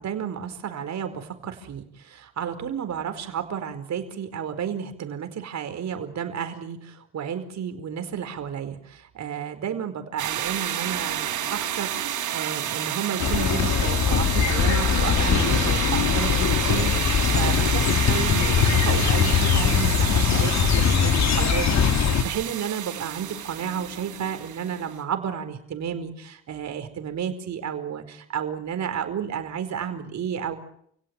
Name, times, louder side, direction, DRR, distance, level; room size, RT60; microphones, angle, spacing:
voice 1, 0.0-30.6, right 8 dB, 65° right, 8 dB, 4.9 m, -32 dB
sound 1, 10.2-25.0, right 11 dB, 80° right, 5.2 m, -30 dB
sound 2, 13.2-22.2, left 7 dB, 65° left, 3.0 m, -21 dB
29.5 x 17.5 x 9.1 m, 0.69 s
cardioid pair, 90°, 30 cm